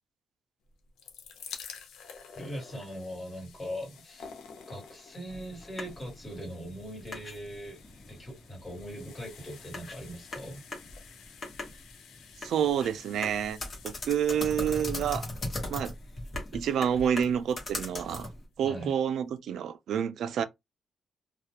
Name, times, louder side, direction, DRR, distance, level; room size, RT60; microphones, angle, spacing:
sound 1, 0.7-17.8 18.5-18.6 18.8-18.9, left 6 dB, 90° left, 0.6 m, -51 dB
voice 1, 2.3-4.3 4.7-7.8 8.1-10.6 18.6-18.9, equal, 10° left, 1.5 m, -40 dB
sound 2, 5.3-18.4, left 2 dB, 30° left, 1.0 m, -40 dB
voice 2, 12.4-13.6 13.8-15.2 15.7-15.9 16.5-18.3 18.6-20.4, right 8 dB, 70° right, 0.3 m, -28 dB
2.4 x 2.1 x 2.8 m
cardioid pair, 145°, 0 cm